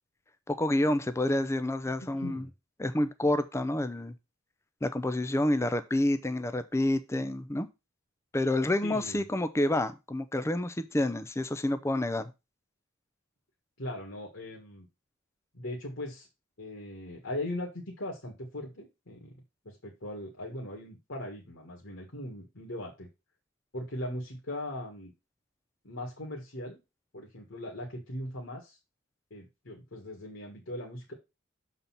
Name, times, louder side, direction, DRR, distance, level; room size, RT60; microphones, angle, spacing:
voice 1, 0.5-2.4 2.8-4.2 4.8-7.7 8.3-12.3, left 1 dB, 15° left, 0.5 m, -28 dB
voice 2, 2.0-2.5 8.8-9.2 13.8-14.9 15.5-16.3 16.6-17.7 18.0-19.4 19.7-23.1 23.7-25.1 25.8-26.8 27.1-28.8 29.3-31.1, left 1 dB, 60° left, 1.8 m, -39 dB
6.8 x 4.1 x 5.7 m
head